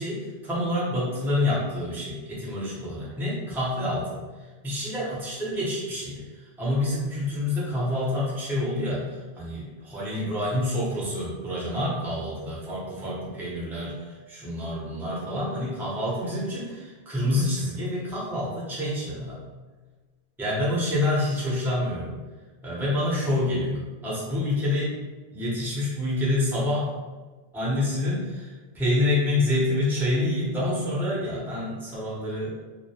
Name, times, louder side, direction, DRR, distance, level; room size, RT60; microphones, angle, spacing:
voice 1, 0.0-4.2 4.6-19.4 20.4-22.1 22.6-24.9 25.3-26.9 27.5-32.5, left 1 dB, 5° right, -7 dB, 0.5 m, -27 dB
2.3 x 2.1 x 2.8 m, 1.3 s
omnidirectional pair, 1.1 m